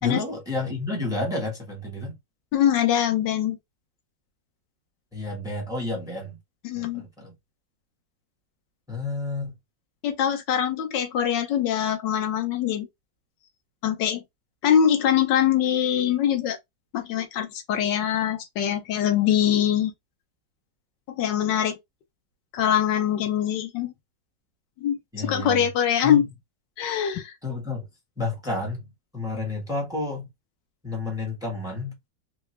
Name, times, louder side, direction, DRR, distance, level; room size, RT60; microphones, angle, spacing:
voice 1, 0.0-2.2 5.1-6.4 6.7-7.3 8.9-9.5 25.1-25.7 26.0-26.2 27.4-27.9 28.2-28.9 29.1-30.3 30.8-31.9, left 2 dB, ahead, 1.1 m, -30 dB
voice 2, 2.5-3.6 6.6-7.0 10.0-12.9 13.8-14.2 14.6-16.6 16.9-19.9 21.1-21.8 22.5-23.9 24.8-26.2 26.8-27.3, left 9 dB, 90° left, 1.4 m, -23 dB
3.9 x 2.3 x 3.1 m
omnidirectional pair, 1.9 m